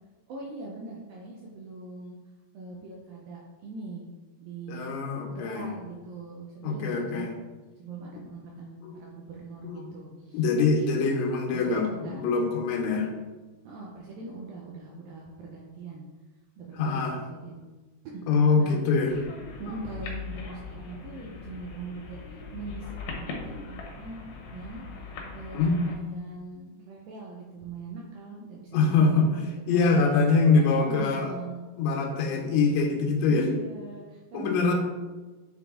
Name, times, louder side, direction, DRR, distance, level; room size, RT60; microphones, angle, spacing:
voice 1, 0.3-2.2 2.5-4.0 4.4-4.9 5.3-7.4 7.8-10.4 10.7-10.9 11.5-12.3 13.7-16.0 16.6-17.6 18.1-18.2 18.6-18.8 19.6-22.2 22.5-24.3 24.5-24.8 25.3-28.8 29.1-30.0 30.5-31.7 33.3-34.7, right 3 dB, 80° right, -3 dB, 2.2 m, -41 dB
voice 2, 4.7-5.7 6.6-7.3 8.8-8.9 9.6-9.9 10.3-13.1 16.8-17.2 18.3-19.2 25.5-25.8 28.7-31.3 31.8-33.5 34.3-34.7, left 4 dB, 85° left, 2 dB, 3.2 m, -24 dB
sound 1, 19.1-26.0, left 4 dB, 70° left, 2.1 m, -40 dB
9.4 x 3.8 x 3.7 m, 1.2 s
omnidirectional pair, 5.0 m